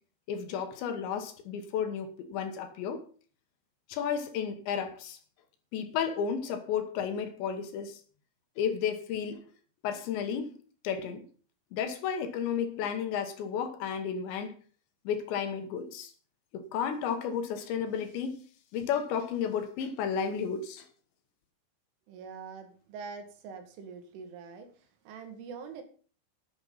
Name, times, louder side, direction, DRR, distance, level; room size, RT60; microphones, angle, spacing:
voice 1, 0.3-3.1 3.9-5.2 5.7-8.0 8.6-9.5 9.8-10.6 10.8-11.2 11.7-14.5 15.0-16.1 16.5-18.4 18.7-20.9, left 7 dB, 70° left, 3.3 m, -32 dB
voice 2, 22.1-25.8, right 5 dB, 80° right, 4.5 m, -44 dB
10.5 x 9.8 x 5.6 m
omnidirectional pair, 5.6 m